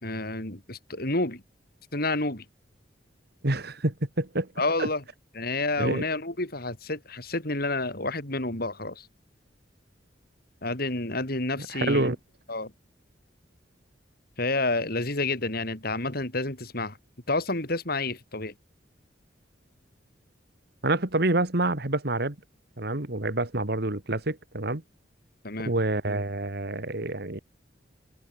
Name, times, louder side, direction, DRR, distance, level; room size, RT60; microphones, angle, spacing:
voice 1, 0.0-1.4 1.9-2.4 4.6-5.0 5.3-9.1 10.6-12.1 12.5-12.7 14.4-17.0 17.3-18.5 25.4-25.7, left 2 dB, 55° left, 5.1 m, -29 dB
voice 2, 3.4-4.5 4.8-4.9 5.8-6.1 11.7-12.2 20.8-22.4 22.8-24.8 25.6-27.4, right 2 dB, 60° right, 2.2 m, -27 dB
head